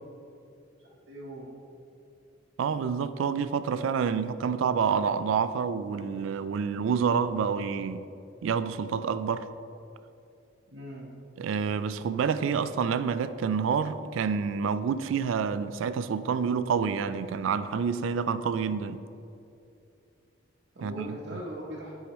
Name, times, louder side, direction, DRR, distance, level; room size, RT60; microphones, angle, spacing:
voice 1, 1.1-1.5 10.7-11.1 20.7-21.9, right 1 dB, 65° right, 0.9 m, -40 dB
voice 2, 2.6-8.0 8.4-9.5 11.4-19.0 20.8-21.1, right 6 dB, 85° right, 0.3 m, -28 dB
10.0 x 4.8 x 3.0 m
head